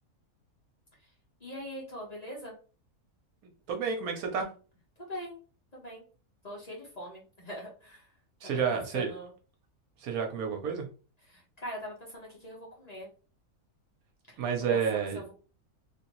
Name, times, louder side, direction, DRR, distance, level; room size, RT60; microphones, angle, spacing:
voice 1, 1.4-2.5 5.1-5.4 5.7-6.0 6.4-8.1 8.4-9.3 11.2-13.1 14.3-14.4 14.7-15.3, equal, 30° left, -3 dB, 1.0 m, -42 dB
voice 2, 3.7-4.5 8.4-9.1 10.0-10.9 14.4-15.2, right 6 dB, 75° right, 3 dB, 1.2 m, -30 dB
3.1 x 2.8 x 2.9 m, 0.36 s
omnidirectional pair, 1.6 m